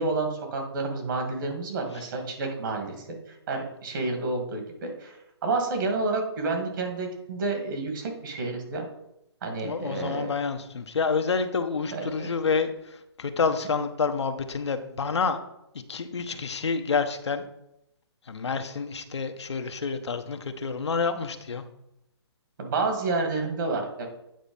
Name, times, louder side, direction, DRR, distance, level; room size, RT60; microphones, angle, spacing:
voice 1, 0.0-5.2 5.4-8.9 9.4-10.3 11.9-12.3 22.6-24.1, right 3 dB, 45° right, 4 dB, 2.1 m, -30 dB
voice 2, 9.6-15.4 15.9-17.4 18.3-21.6, left 5 dB, 80° left, 7 dB, 0.9 m, -28 dB
8.9 x 4.2 x 5.5 m, 0.81 s
hypercardioid pair, 155°, 14 cm